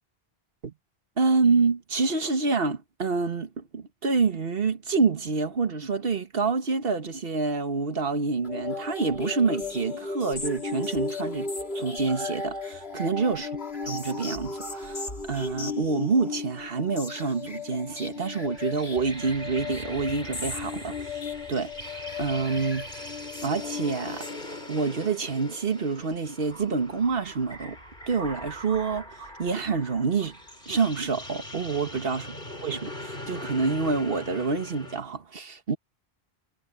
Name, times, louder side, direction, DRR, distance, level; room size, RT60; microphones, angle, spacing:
voice 1, 1.2-11.5 11.7-13.5 13.9-15.0 15.3-21.2 21.5-23.1 23.4-24.3 24.7-27.8 28.1-30.4 30.7-32.3 32.6-35.8, right 4 dB, 65° right, 1.6 m, -27 dB
sound 1, 8.4-24.9, left 4 dB, 80° left, 3.3 m, -35 dB
sound 2, 18.1-35.0, equal, 55° left, 6.7 m, -41 dB
omnidirectional pair, 1.0 m